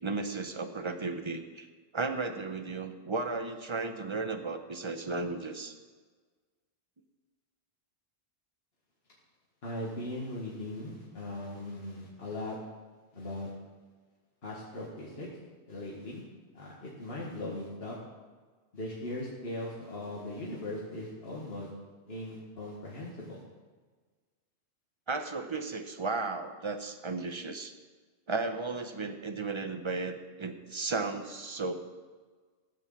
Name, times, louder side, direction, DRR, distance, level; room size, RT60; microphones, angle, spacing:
voice 1, 0.0-1.7 1.9-5.7 25.1-27.7 28.3-31.7, right 3 dB, 30° right, 7 dB, 0.9 m, -34 dB
voice 2, 9.6-12.6 13.1-13.5 14.4-15.3 15.7-16.2 16.5-18.0 18.7-21.7 22.1-23.4, left 1 dB, 65° left, -5 dB, 2.1 m, -39 dB
15.5 x 6.3 x 7.2 m, 1.4 s
omnidirectional pair, 1.1 m